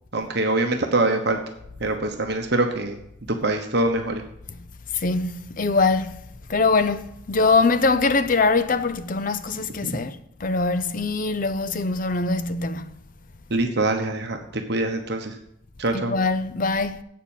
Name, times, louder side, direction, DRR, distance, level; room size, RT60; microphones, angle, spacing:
voice 1, 0.1-1.4 1.8-3.0 3.4-4.2 9.8-9.9 13.5-15.3 15.8-16.1, right 2 dB, 55° right, 1.1 m, -24 dB
voice 2, 4.9-6.2 6.5-12.9 15.9-17.0, left 3 dB, 40° left, 0.6 m, -23 dB
8.4 x 7.4 x 7.3 m
head